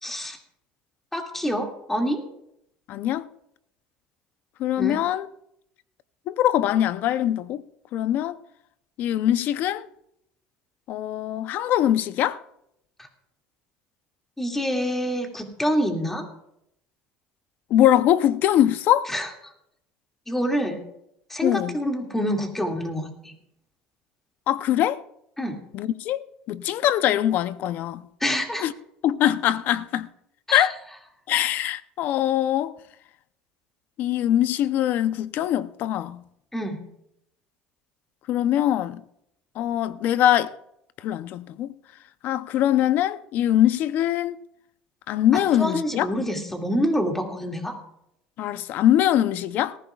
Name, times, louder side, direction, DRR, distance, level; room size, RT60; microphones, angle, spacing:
voice 1, 0.0-0.4 1.1-2.2 4.8-5.0 14.4-16.3 19.1-19.3 20.3-20.8 21.3-23.3 25.4-25.6 28.2-28.6 30.5-30.7 36.5-36.8 45.6-47.7, equal, 10° left, 2.2 m, -26 dB
voice 2, 2.9-3.3 4.6-5.3 6.3-7.6 7.9-8.4 9.0-9.9 10.9-12.4 17.7-19.1 21.4-21.8 24.5-25.0 25.7-28.0 28.6-28.7 29.0-30.1 30.5-30.7 31.3-32.7 34.0-36.2 38.3-39.0 39.6-40.5 41.0-41.7 42.2-44.4 45.1-46.1 48.4-49.8, left 12 dB, 60° left, 0.6 m, -22 dB
18.5 x 15.0 x 2.4 m
cardioid pair, 120°, 4 cm